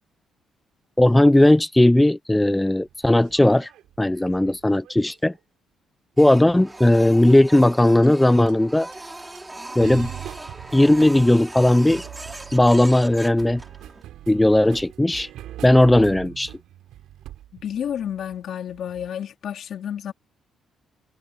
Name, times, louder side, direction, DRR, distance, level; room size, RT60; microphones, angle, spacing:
voice 1, 1.0-3.7 4.0-5.3 6.2-8.9 9.8-10.1 10.7-12.0 12.5-13.6 14.3-15.3 15.6-16.5, left 1 dB, 10° left, 0.7 m, -17 dB
sound 1, 2.8-5.4 6.3-6.8 8.0-8.2 8.5-8.6 8.9-9.0 9.3-19.1, right 12 dB, 85° right, 4.7 m, -42 dB
Printer, 6.2-14.0, right 2 dB, 15° right, 6.3 m, -39 dB
voice 2, 17.5-20.1, left 9 dB, 65° left, 2.7 m, -30 dB
cardioid pair, 90°, 0 cm